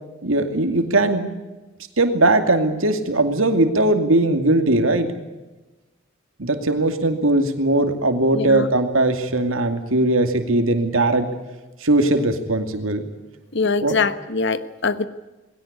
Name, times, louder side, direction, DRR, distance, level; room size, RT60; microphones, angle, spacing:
voice 1, 0.2-1.3 2.0-5.1 6.4-11.3 11.8-13.1 13.8-14.0, right 2 dB, 80° right, 7 dB, 2.5 m, -19 dB
voice 2, 8.3-8.7 13.5-15.1, left 4 dB, 55° left, 12 dB, 1.2 m, -23 dB
20.5 x 17.5 x 9.8 m, 1.1 s
head